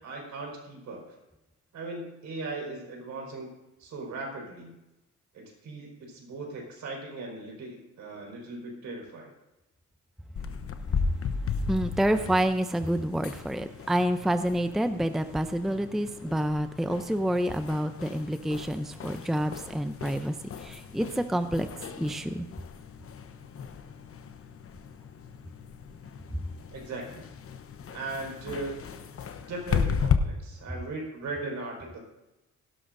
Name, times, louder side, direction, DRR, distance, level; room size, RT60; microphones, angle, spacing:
voice 1, 0.0-1.2 1.7-3.5 3.8-4.7 5.3-9.3 26.7-27.2 27.9-28.8 29.5-32.0, right 2 dB, 70° right, -1 dB, 5.0 m, -38 dB
sound 1, 10.4-30.2, left 6 dB, 50° left, 0.9 m, -35 dB
voice 2, 11.7-20.3 20.6-21.7 22.0-22.5, right 1 dB, ahead, 10 dB, 0.5 m, -28 dB
17.0 x 12.0 x 2.6 m, 0.97 s
cardioid pair, 90°, 30 cm